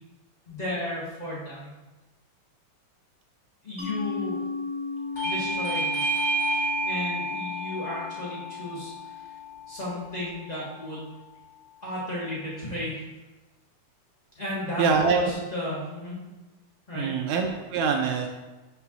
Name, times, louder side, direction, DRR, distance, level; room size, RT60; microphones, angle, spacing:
voice 1, 0.5-1.7 3.6-4.4 5.2-6.0 6.4-9.3 9.7-11.1 11.8-13.1 14.4-16.2 16.9-17.1, left 1 dB, 75° left, -7 dB, 0.3 m, -34 dB
Mallet percussion, 3.8-9.2, left 4 dB, 5° right, 0.6 m, -36 dB
Bell / Doorbell, 5.2-10.3, right 1 dB, 40° left, 1.1 m, -30 dB
voice 2, 14.8-15.3 17.0-18.3, right 5 dB, 75° right, 3 dB, 1.8 m, -24 dB
6.9 x 3.6 x 6.0 m, 1.1 s
omnidirectional pair, 3.6 m